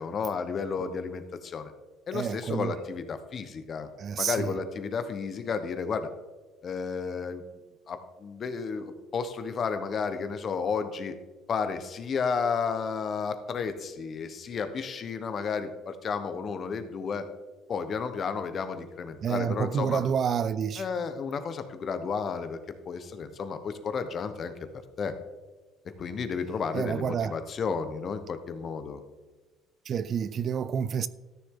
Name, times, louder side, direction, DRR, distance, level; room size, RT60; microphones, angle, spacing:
voice 1, 0.0-1.7 2.1-3.9 4.2-6.1 6.6-7.4 7.9-11.1 11.5-17.3 17.7-20.0 20.8-24.5 25.0-25.1 26.0-29.0, left 5 dB, 45° left, 1.0 m, -32 dB
voice 2, 2.1-2.8 4.0-4.6 19.2-20.9 26.7-27.3 29.9-31.1, right 7 dB, 45° right, 0.4 m, -29 dB
13.0 x 6.8 x 3.8 m
cardioid pair, 105°, 0 cm